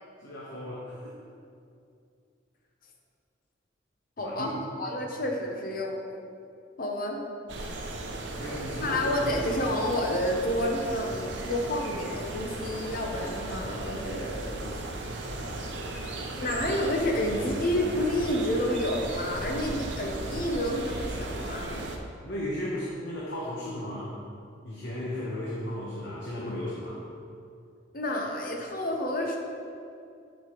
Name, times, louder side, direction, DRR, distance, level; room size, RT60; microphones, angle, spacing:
voice 1, 0.2-1.0 4.2-4.5 5.0-5.1 8.0-9.4 16.5-16.6 22.2-24.1 24.6-27.0, left 1 dB, 70° left, -5 dB, 1.1 m, -35 dB
voice 2, 4.2-4.5 4.8-6.0 6.8-7.2 8.8-14.8 16.4-21.9 27.9-29.4, left 1 dB, 50° left, 1 dB, 0.7 m, -29 dB
sound 1, 7.5-22.0, right 2 dB, 75° right, 0.7 m, -36 dB
10.0 x 5.4 x 3.0 m, 2.4 s
head